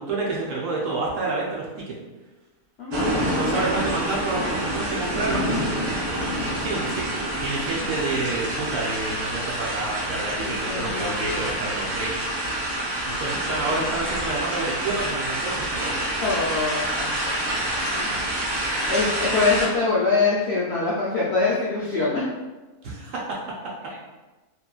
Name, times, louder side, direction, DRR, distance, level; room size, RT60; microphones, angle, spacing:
voice 1, 0.0-1.9 3.2-5.5 6.4-12.2 13.0-16.0 22.8-23.4, right 3 dB, 65° right, -4 dB, 0.9 m, -29 dB
voice 2, 2.8-3.3 10.4-11.5 13.7-13.9 16.2-17.3 17.9-22.3 23.9-24.0, left 3 dB, 70° left, -7 dB, 0.6 m, -25 dB
sound 1, 2.9-19.7, right 1 dB, 85° right, 1.3 m, -27 dB
2.9 x 2.5 x 2.3 m, 1.2 s
omnidirectional pair, 1.6 m